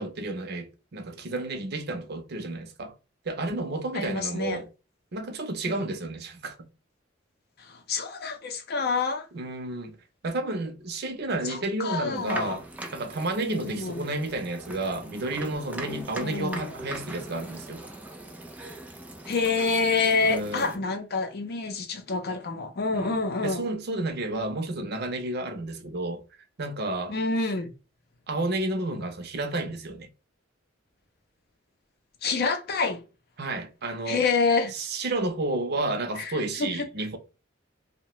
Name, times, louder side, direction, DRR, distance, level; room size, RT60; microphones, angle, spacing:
voice 1, 0.0-2.9 3.2-4.7 5.1-6.7 9.3-10.0 10.2-12.6 12.9-17.9 20.2-20.7 22.9-26.2 26.6-27.2 28.3-30.1 33.4-34.2 34.7-37.2, right 2 dB, 55° right, 0.6 m, -31 dB
voice 2, 3.9-4.6 5.7-5.8 7.6-9.3 11.4-12.6 13.5-14.2 15.9-16.7 19.3-23.7 27.1-27.7 32.2-33.0 34.1-34.7 36.2-36.3 36.6-36.9, left 4 dB, 55° left, 0.5 m, -27 dB
sound 1, 12.2-20.8, right 1 dB, 10° right, 0.4 m, -40 dB
2.7 x 2.1 x 2.9 m
head